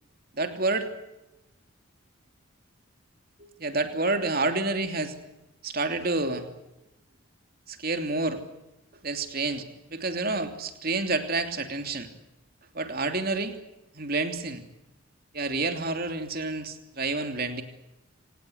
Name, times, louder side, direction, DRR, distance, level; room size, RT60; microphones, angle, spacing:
voice 1, 0.3-0.9 3.4-5.1 5.6-6.5 7.7-8.4 9.0-9.6 9.9-12.1 12.7-13.5 13.9-14.6 15.3-17.6, right 3 dB, 45° right, 7 dB, 3.0 m, -29 dB
27.0 x 18.0 x 8.0 m, 0.95 s
head